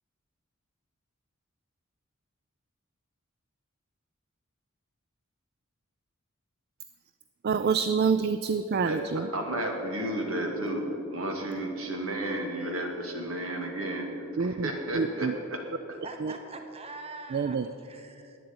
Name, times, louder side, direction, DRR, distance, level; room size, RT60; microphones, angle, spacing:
voice 1, 7.4-9.3 14.4-14.7 14.9-15.3 16.2-16.3 17.3-17.7, right 5 dB, 50° right, 12 dB, 0.4 m, -27 dB
voice 2, 8.8-10.8 11.1-15.6, right 1 dB, 75° right, 2 dB, 2.3 m, -32 dB
voice 3, 16.0-18.4, right 3 dB, 30° right, 5 dB, 0.9 m, -43 dB
11.5 x 9.3 x 8.7 m, 2.9 s
head